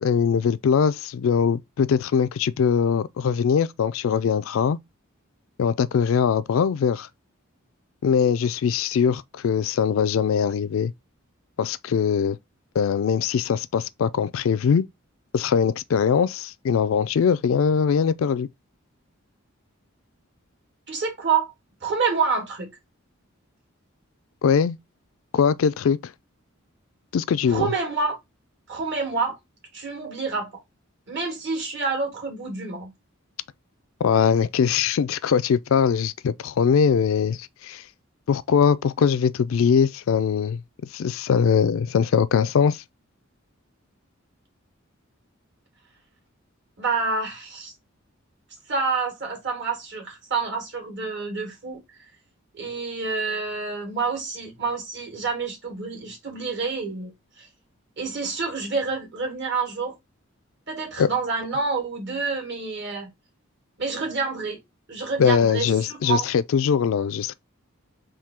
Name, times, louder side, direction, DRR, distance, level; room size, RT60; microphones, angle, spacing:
voice 1, 0.0-4.8 5.6-7.1 8.0-10.9 11.6-12.4 12.8-14.8 15.3-18.5 24.4-24.8 25.3-26.0 27.1-27.7 34.0-37.8 38.3-40.6 40.9-42.8 61.0-61.1 65.2-67.3, left 7 dB, 70° left, 0.3 m, -21 dB
voice 2, 20.9-21.5 21.8-22.7 27.5-28.2 28.7-29.4 29.7-30.5 31.1-32.9 46.8-47.7 48.7-52.0 52.5-57.5 58.0-59.9 60.7-63.1 63.8-64.6 64.9-66.3, right 4 dB, 60° right, 1.8 m, -28 dB
3.7 x 2.7 x 4.2 m
head